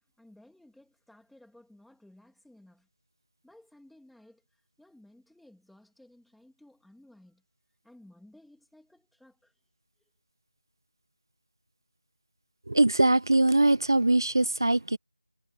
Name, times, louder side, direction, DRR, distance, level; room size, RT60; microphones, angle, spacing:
voice 1, 0.2-2.9 3.4-7.4 7.8-9.5, left 1 dB, ahead, 2.7 m, -57 dB
voice 2, 12.7-15.0, right 2 dB, 55° right, 1.3 m, -22 dB
figure-of-eight pair, 180°, 3 cm